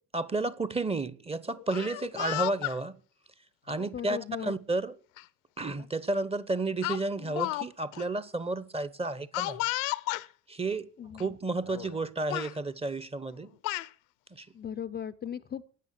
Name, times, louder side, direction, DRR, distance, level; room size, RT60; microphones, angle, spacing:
voice 1, 0.1-2.9 3.7-4.9 5.6-9.6 10.5-10.9 11.1-13.5 14.3-14.5, right 2 dB, 15° right, 0.9 m, -32 dB
Speech, 1.6-2.8 3.7-3.9 5.2-5.3 5.6-5.9 6.8-7.7 7.9-8.0 9.3-10.3 11.2-11.3 11.6-12.0 12.3-12.5 13.3-13.9, left 20 dB, 55° left, 0.8 m, -33 dB
voice 2, 3.9-4.5 11.0-11.4 14.5-15.6, left 8 dB, 20° left, 0.6 m, -37 dB
15.0 x 9.9 x 7.0 m
figure-of-eight pair, 55°, 45 cm